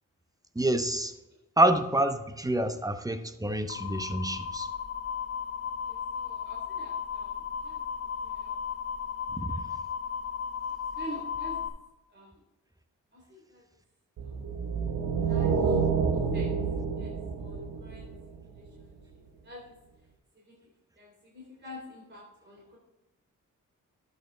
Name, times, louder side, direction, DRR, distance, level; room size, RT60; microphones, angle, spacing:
voice 1, 0.6-1.1 1.6-4.7 9.4-9.6, right 1 dB, 10° right, 9 dB, 0.9 m, -27 dB
sound 1, 3.7-11.7, left 7 dB, 45° left, 1.7 m, -35 dB
voice 2, 5.8-7.3 7.6-7.8 8.2-8.6 9.3-9.6 11.0-11.7 12.1-12.4 13.1-13.6 14.2-14.3 15.2-15.8 16.3-16.5 16.9-17.1 17.4-18.1 18.5-19.7 20.4-20.6 21.0-22.8, equal, 35° right, -3 dB, 3.5 m, -47 dB
sound 2, 14.2-18.6, right 5 dB, 85° right, 1.2 m, -28 dB
12.5 x 6.9 x 3.4 m, 0.99 s
cardioid pair, 60°, 33 cm